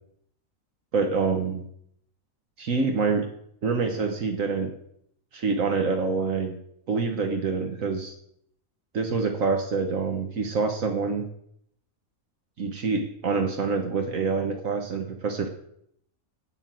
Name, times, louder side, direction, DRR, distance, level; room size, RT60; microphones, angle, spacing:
voice 1, 0.9-1.6 2.6-3.3 3.6-4.7 5.3-6.6 6.9-8.1 8.9-11.3 12.6-15.5, right 4 dB, 70° right, 4 dB, 1.5 m, -26 dB
8.6 x 8.2 x 7.5 m, 0.71 s
omnidirectional pair, 1.5 m